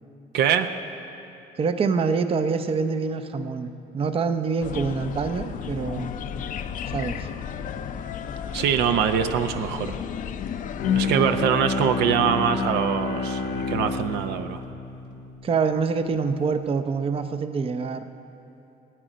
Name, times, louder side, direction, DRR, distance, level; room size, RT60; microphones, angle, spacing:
voice 1, 0.3-0.7 8.5-9.9 10.9-14.6, right 8 dB, 80° right, 8 dB, 0.6 m, -23 dB
voice 2, 1.6-6.1 6.9-7.3 15.4-18.1, right 5 dB, 35° right, 9 dB, 0.6 m, -25 dB
sound 1, 4.6-11.1, left 8 dB, 50° left, 0.6 m, -33 dB
Bowed string instrument, 10.8-16.2, left 4 dB, 80° left, 1.4 m, -29 dB
16.5 x 9.1 x 5.0 m, 2.8 s
cardioid pair, 110°, 17 cm